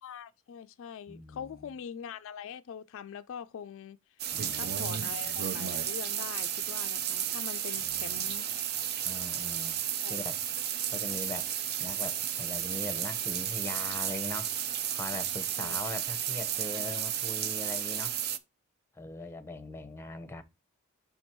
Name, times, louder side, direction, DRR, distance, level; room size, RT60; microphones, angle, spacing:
voice 1, 0.0-8.5 10.0-10.2 15.6-15.8, left 8 dB, 60° left, 0.3 m, -43 dB
voice 2, 1.1-1.7 4.3-5.4 7.8-8.3 9.0-9.8 10.1-10.4 10.9-11.5 11.8-14.5 14.9-18.2 18.9-20.4, left 2 dB, 10° left, 0.7 m, -41 dB
sound 1, 4.2-18.4, right 10 dB, 45° right, 0.5 m, -33 dB
5.8 x 4.3 x 4.5 m
head